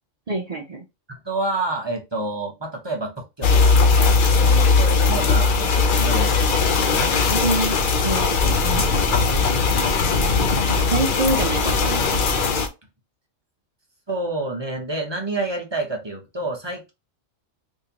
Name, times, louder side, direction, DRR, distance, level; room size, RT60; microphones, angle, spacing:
voice 1, 0.3-0.8 7.3-8.5 10.6-12.2, right 2 dB, 60° right, 2 dB, 0.4 m, -26 dB
voice 2, 1.1-7.1 14.1-16.9, right 2 dB, 25° right, 1 dB, 0.7 m, -29 dB
sound 1, 3.4-12.7, left 4 dB, 55° left, 0.6 m, -19 dB
3.6 x 2.7 x 2.8 m, 0.24 s
omnidirectional pair, 1.4 m